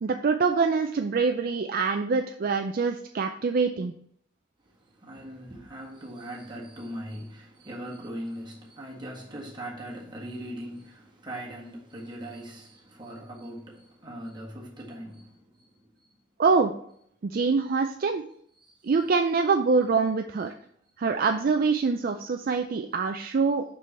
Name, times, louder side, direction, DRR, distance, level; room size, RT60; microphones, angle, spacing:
voice 1, 0.0-3.9 16.4-16.7 17.2-18.2 18.8-20.5 21.0-23.6, right 4 dB, 50° right, 0.4 m, -25 dB
voice 2, 5.0-15.3, right 1 dB, 25° right, 1.6 m, -40 dB
5.6 x 5.3 x 4.4 m
head